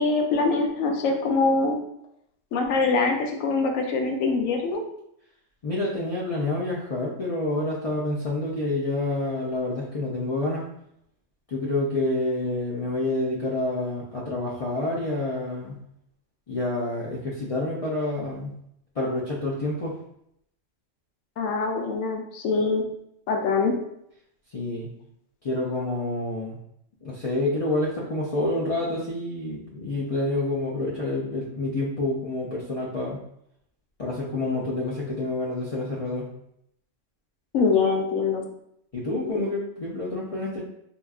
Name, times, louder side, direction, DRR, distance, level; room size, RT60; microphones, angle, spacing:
voice 1, 0.0-1.8 2.5-4.8 21.4-22.8 23.3-23.8 37.5-38.4, left 4 dB, 85° left, 2 dB, 1.0 m, -23 dB
voice 2, 5.6-10.6 11.5-15.8 16.5-18.6 19.0-20.0 24.5-24.9 25.4-26.6 27.0-33.2 34.0-36.3 38.9-40.6, left 2 dB, 55° left, -5 dB, 0.4 m, -28 dB
4.3 x 2.3 x 2.3 m, 0.74 s
omnidirectional pair, 1.3 m